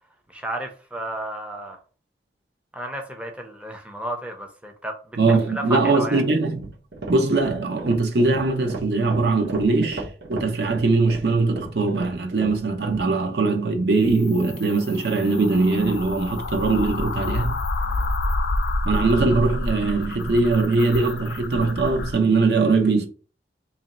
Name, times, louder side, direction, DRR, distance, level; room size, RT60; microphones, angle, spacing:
voice 1, 0.3-1.8 2.7-5.2 5.5-6.2 17.8-18.1, right 1 dB, 5° right, 0.5 m, -32 dB
voice 2, 5.2-6.7 7.1-17.6 18.8-23.1, right 3 dB, 65° right, 0.7 m, -21 dB
sound 1, 6.4-13.1, right 2 dB, 85° right, 1.0 m, -35 dB
sound 2, 14.0-22.2, left 2 dB, 75° left, 0.5 m, -28 dB
3.0 x 2.7 x 4.1 m
head